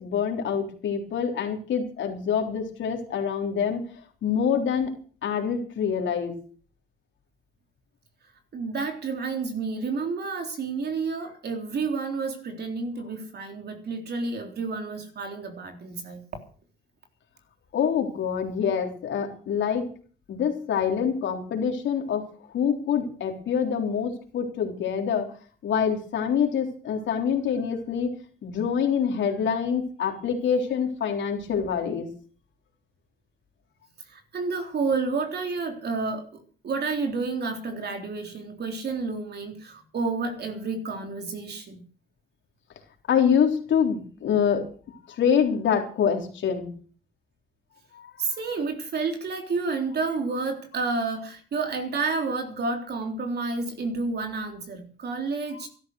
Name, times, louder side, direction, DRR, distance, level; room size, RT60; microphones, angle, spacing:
voice 1, 0.0-3.8 4.2-4.9 5.2-6.4 17.7-19.9 20.3-25.3 25.6-28.1 28.4-32.1 43.1-46.7 47.9-48.1 55.5-55.6, left 7 dB, 70° left, 3.8 m, -26 dB
voice 2, 8.5-16.2 34.1-41.8 48.2-55.7, right 4 dB, 55° right, 3.7 m, -30 dB
13.5 x 12.5 x 6.5 m
cardioid pair, 90°, 20 cm